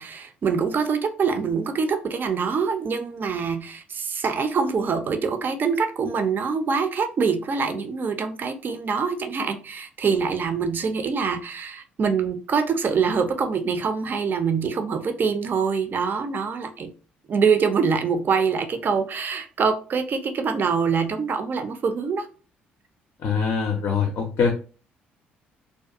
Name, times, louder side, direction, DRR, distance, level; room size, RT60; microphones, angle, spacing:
voice 1, 0.0-16.9 17.3-22.3, right 5 dB, 40° right, 0.4 m, -24 dB
voice 2, 23.2-24.5, left 6 dB, 50° left, 0.4 m, -23 dB
2.5 x 2.2 x 2.4 m
figure-of-eight pair, 45°, 5 cm